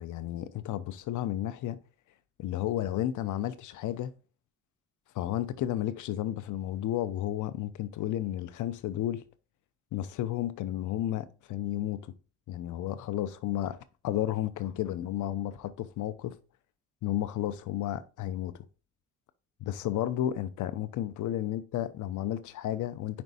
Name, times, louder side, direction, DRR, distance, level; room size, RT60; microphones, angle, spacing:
voice 1, 0.0-1.8 2.4-4.1 5.1-9.2 9.9-12.1 12.5-13.8 14.0-16.4 17.0-18.5 19.6-23.2, left 12 dB, 75° left, 0.7 m, -32 dB
5.3 x 4.4 x 4.1 m
cardioid pair, 90°, 30 cm